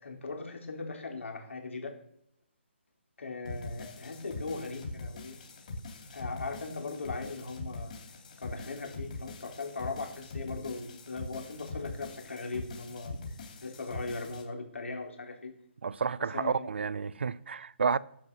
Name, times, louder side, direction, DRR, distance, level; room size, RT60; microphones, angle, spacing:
voice 1, 0.0-1.9 3.2-5.3 6.1-7.9 8.4-13.1 13.6-15.5 16.3-16.7, left 3 dB, 85° left, 3.8 m, -39 dB
sound 1, 3.5-14.4, left 2 dB, 40° left, 3.2 m, -42 dB
voice 2, 15.8-18.0, right 5 dB, 60° right, 0.6 m, -30 dB
10.5 x 8.0 x 6.1 m
hypercardioid pair, 170°, 7 cm